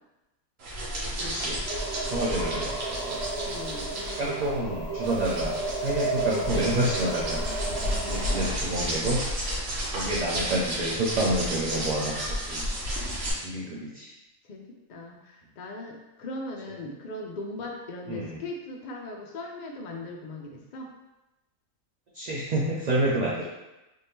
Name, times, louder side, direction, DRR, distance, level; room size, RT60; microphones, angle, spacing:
sound 1, 0.6-13.3, equal, 75° right, 1.3 m, -32 dB
voice 1, 1.2-1.6 2.1-2.8 3.1-3.2 4.2-7.4 8.1-9.2 9.9-12.7 13.4-14.1 18.1-18.4 22.1-23.5, right 1 dB, 55° right, -5 dB, 0.4 m, -28 dB
sound 2, 1.6-8.5, right 3 dB, 15° left, 0.9 m, -33 dB
voice 2, 3.4-4.4 7.7-8.6 13.2-13.9 14.5-20.9, left 2 dB, 85° left, 1 dB, 0.4 m, -39 dB
3.4 x 2.7 x 3.4 m, 0.99 s
omnidirectional pair, 1.4 m